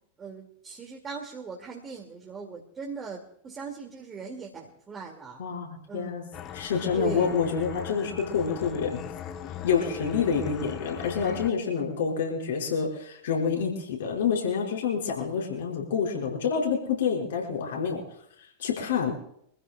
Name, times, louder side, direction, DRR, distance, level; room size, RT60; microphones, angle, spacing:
voice 1, 0.2-5.4 5.9-6.5 6.9-7.4, right 5 dB, 20° right, -1 dB, 2.5 m, -39 dB
voice 2, 5.4-6.2 6.5-9.0 9.6-18.0 18.6-19.1, left 6 dB, 60° left, 0 dB, 5.4 m, -27 dB
sound 1, 6.3-11.5, left 9 dB, 30° left, 1.1 m, -39 dB
25.5 x 15.5 x 2.4 m, 0.70 s
figure-of-eight pair, 90°, 0 cm